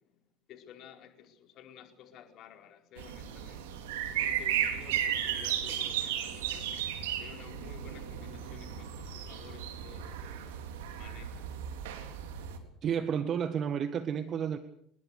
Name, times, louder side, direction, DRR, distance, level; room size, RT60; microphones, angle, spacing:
voice 1, 0.5-3.6 4.1-6.7 7.2-10.4 10.9-11.4, left 9 dB, 45° left, 4 dB, 4.8 m, -52 dB
sound 1, 3.0-12.6, right 9 dB, 65° right, 3.7 m, -35 dB
voice 2, 12.8-14.6, right 8 dB, 40° right, 12 dB, 1.6 m, -31 dB
30.0 x 20.0 x 6.8 m, 0.69 s
figure-of-eight pair, 65°, 0 cm